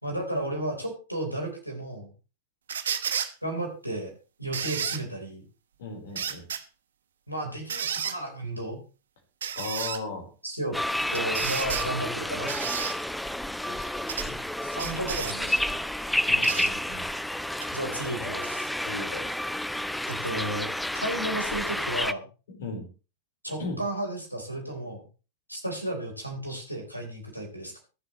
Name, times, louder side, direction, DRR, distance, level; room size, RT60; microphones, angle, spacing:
voice 1, 0.0-2.1 3.4-4.1 4.4-5.4 7.3-8.8 10.4-10.7 11.1-12.5 14.6-15.7 17.7-18.7 20.1-20.7 20.9-22.3 23.4-25.0 25.5-27.8, right 1 dB, 90° right, 1 dB, 4.1 m, -33 dB
sound 1, 2.7-3.3 4.5-5.0 6.1-6.6 7.7-8.2 9.4-10.0 11.1-11.9 12.5-12.9 14.1-14.3 14.8-15.4 16.4-16.7 17.6-17.7, right 8 dB, 65° right, 1.2 m, -31 dB
voice 2, 5.8-6.5 9.6-10.3 13.7-14.4 16.3-17.1 18.8-19.3 22.5-22.9 23.6-23.8, left 3 dB, 60° left, 3 dB, 4.3 m, -37 dB
sound 2, 10.7-22.1, left 1 dB, 5° left, 0.6 m, -30 dB
23.5 x 7.9 x 3.2 m, 0.34 s
figure-of-eight pair, 90°, 0 cm